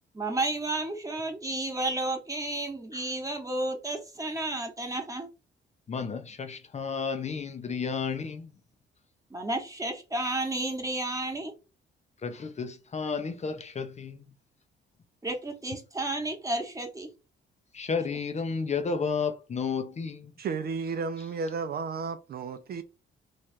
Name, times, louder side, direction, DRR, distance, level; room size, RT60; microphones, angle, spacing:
voice 1, 0.1-5.3 9.3-11.5 15.2-17.1, right 2 dB, 15° right, 1.1 m, -32 dB
voice 2, 5.9-8.5 12.2-14.3 17.7-20.3, left 5 dB, 35° left, 0.5 m, -32 dB
voice 3, 20.4-22.8, right 5 dB, 50° right, 0.4 m, -33 dB
3.1 x 2.4 x 4.2 m
cardioid pair, 90°, 20 cm